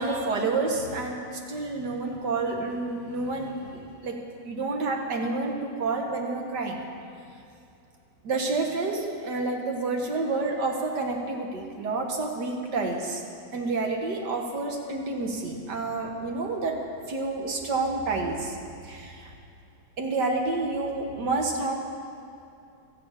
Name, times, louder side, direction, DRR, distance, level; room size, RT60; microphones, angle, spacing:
voice 1, 0.0-4.2 4.4-6.8 8.2-13.2 13.5-16.8 17.1-18.6 18.8-19.3 20.0-21.7, right 3 dB, 60° right, 1 dB, 2.2 m, -29 dB
13.0 x 11.0 x 8.4 m, 2.6 s
omnidirectional pair, 2.2 m